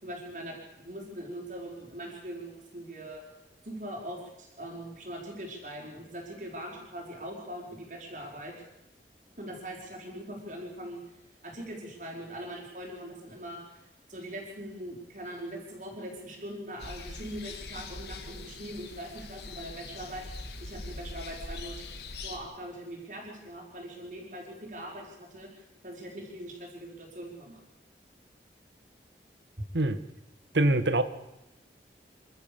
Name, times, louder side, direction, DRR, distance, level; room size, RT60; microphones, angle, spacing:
voice 1, 0.0-3.2 3.6-8.6 9.4-11.0 11.4-13.8 14.1-21.9 22.2-27.6, right 1 dB, 45° right, 0 dB, 5.2 m, -41 dB
sound 1, 16.8-22.4, left 3 dB, 70° left, 2.1 m, -42 dB
voice 2, 30.5-31.0, right 2 dB, 85° right, 13 dB, 1.5 m, -23 dB
28.0 x 13.0 x 7.1 m, 0.91 s
head